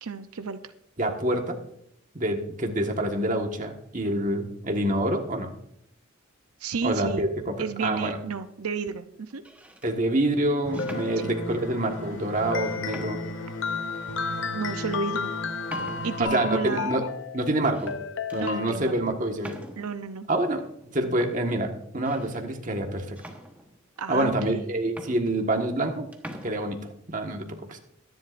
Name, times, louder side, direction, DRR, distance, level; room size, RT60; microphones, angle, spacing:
voice 1, 0.0-0.6 6.6-7.2 7.6-9.4 11.2-11.3 14.5-15.3 16.0-16.9 18.3-19.0 19.8-20.3 24.0-24.6, right 5 dB, 85° right, 9 dB, 0.7 m, -32 dB
voice 2, 1.0-1.6 2.1-5.5 6.8-7.5 7.8-8.2 9.8-13.2 16.2-17.0 17.3-17.9 18.3-19.6 20.3-20.6 20.9-23.2 24.1-26.1 26.4-26.8 27.1-27.8, right 1 dB, 35° right, 3 dB, 1.5 m, -26 dB
sound 1, 8.1-8.5 9.3-9.9 10.7-11.7 12.4-12.5 12.9-13.4 14.0-14.1 14.7-14.9 15.7-16.4 17.5-18.0 18.3-18.6 19.4-20.0 20.8-20.9 21.2-22.4 23.2-24.0 24.6-24.7 24.9-25.9 26.1-26.5, equal, 5° right, 1.1 m, -44 dB
sound 2, 10.5-11.8 12.5-18.7, left 6 dB, 60° left, 0.6 m, -34 dB
sound 3, 10.7-16.2, equal, 85° left, 3.5 m, -36 dB
23.0 x 11.0 x 2.5 m, 0.71 s
head